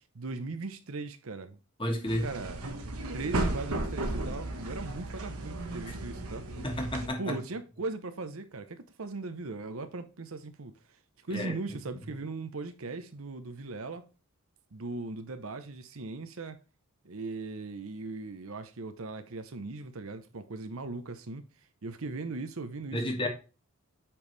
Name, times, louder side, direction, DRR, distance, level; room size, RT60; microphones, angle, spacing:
voice 1, 0.1-1.6 2.2-2.6 3.1-6.4 7.2-10.7 11.2-14.1 14.7-16.6 17.0-21.4 21.8-23.3, right 3 dB, 70° right, 0.8 m, -38 dB
voice 2, 1.8-2.3 6.6-7.4 11.3-11.6 22.9-23.3, left 1 dB, 25° left, 1.4 m, -31 dB
sound 1, 2.1-7.1, right 1 dB, 85° right, 1.4 m, -35 dB
8.7 x 4.7 x 3.3 m
head